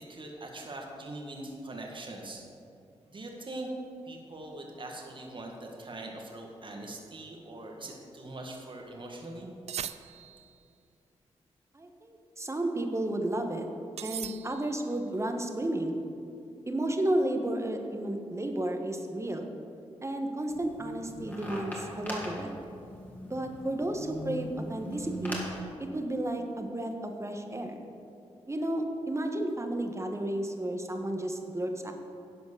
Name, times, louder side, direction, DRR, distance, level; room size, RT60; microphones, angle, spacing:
voice 1, 0.0-2.5 3.1-3.7 4.1-9.5, right 2 dB, 45° right, 1 dB, 1.7 m, -42 dB
sound 1, 9.7-10.6 14.0-14.9, right 9 dB, 65° right, 0.4 m, -40 dB
voice 2, 11.7-13.7 14.0-16.0 16.7-19.5 20.0-22.5 23.2-25.4 25.8-27.8 28.5-31.9, right 1 dB, 25° right, 4 dB, 1.4 m, -32 dB
sound 2, 20.5-25.6, equal, 15° left, 2.7 m, -40 dB
11.0 x 5.1 x 6.8 m, 2.5 s
supercardioid pair, 45°, 12 cm